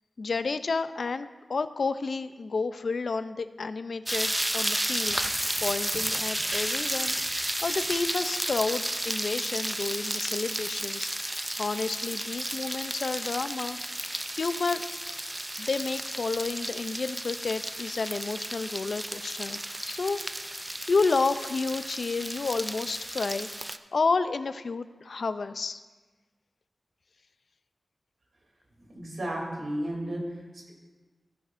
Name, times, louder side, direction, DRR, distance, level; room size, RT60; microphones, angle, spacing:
voice 1, 0.2-5.3 5.6-7.2 7.6-11.3 11.6-13.8 14.3-14.9 15.6-20.2 20.9-23.5 23.9-25.8, left 4 dB, 65° left, 12 dB, 0.4 m, -30 dB
sound 1, 4.1-23.8, right 1 dB, 15° right, 0.4 m, -32 dB
voice 2, 28.8-30.7, right 1 dB, 75° right, -2 dB, 2.8 m, -34 dB
15.5 x 9.6 x 2.6 m, 1.3 s
wide cardioid pair, 100°, 0 cm